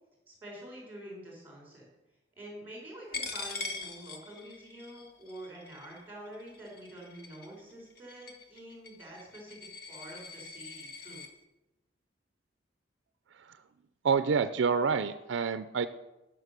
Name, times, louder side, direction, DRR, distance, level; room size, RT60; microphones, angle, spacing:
voice 1, 0.3-1.9 2.4-9.6 9.9-11.2, right 1 dB, 10° right, -2 dB, 4.5 m, -47 dB
Coin (dropping), 3.1-11.3, left 4 dB, 55° left, 1.2 m, -43 dB
voice 2, 14.0-15.9, right 5 dB, 70° right, 12 dB, 0.4 m, -28 dB
11.0 x 5.9 x 6.7 m, 0.99 s
head